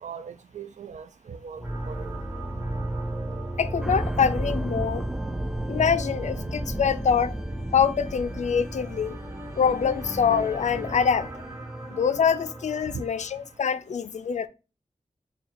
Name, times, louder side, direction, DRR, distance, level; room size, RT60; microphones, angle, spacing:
voice 1, 0.0-2.1 12.9-13.0, right 6 dB, 70° right, 0.4 m, -39 dB
sound 1, 1.6-13.5, right 1 dB, 20° right, 1.0 m, -34 dB
voice 2, 3.6-5.1 5.7-7.3 7.7-9.2 9.6-11.3 11.9-14.5, left 7 dB, 70° left, 0.4 m, -24 dB
sound 2, 3.8-10.0 10.3-10.4, right 1 dB, 5° right, 0.4 m, -35 dB
4.1 x 2.2 x 3.8 m
wide cardioid pair, 65°, 13 cm